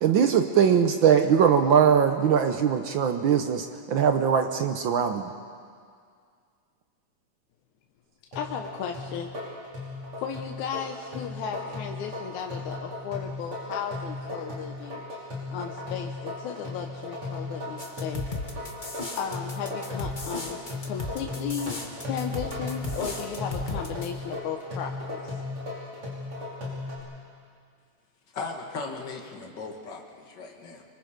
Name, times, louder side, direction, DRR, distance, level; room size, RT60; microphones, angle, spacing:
voice 1, 0.0-5.3, right 7 dB, 75° right, 6 dB, 1.1 m, -21 dB
sound 1, 8.3-27.0, left 2 dB, 50° right, 6.7 m, -36 dB
voice 2, 8.4-9.3 10.2-15.0 15.5-18.3 19.2-21.7 22.0-25.4, left 7 dB, 80° left, 3 dB, 2.4 m, -35 dB
sound 2, 17.8-24.1, left 2 dB, 25° left, 1.2 m, -35 dB
voice 3, 28.3-30.8, left 4 dB, 40° left, 1 dB, 2.5 m, -37 dB
25.0 x 25.0 x 5.2 m, 2.1 s
omnidirectional pair, 3.3 m